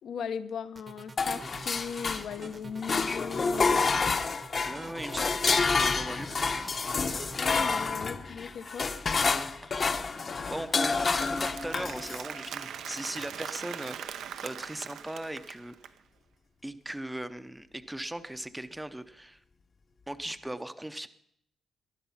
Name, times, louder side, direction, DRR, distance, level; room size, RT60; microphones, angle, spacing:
voice 1, 0.0-3.9 7.4-8.9, left 7 dB, 70° left, 10 dB, 1.0 m, -38 dB
sound 1, 0.8-7.9, right 4 dB, 30° right, 1.0 m, -47 dB
sound 2, 1.2-2.5 2.8-12.3, left 4 dB, 35° left, 1.0 m, -29 dB
voice 2, 4.6-6.8 9.2-15.7 16.6-19.4 20.1-21.1, right 1 dB, 5° right, 11 dB, 0.7 m, -39 dB
Applause, 10.2-16.0, right 9 dB, 85° right, 0.9 m, -42 dB
19.0 x 12.0 x 5.8 m, 0.73 s
wide cardioid pair, 145°, 0 cm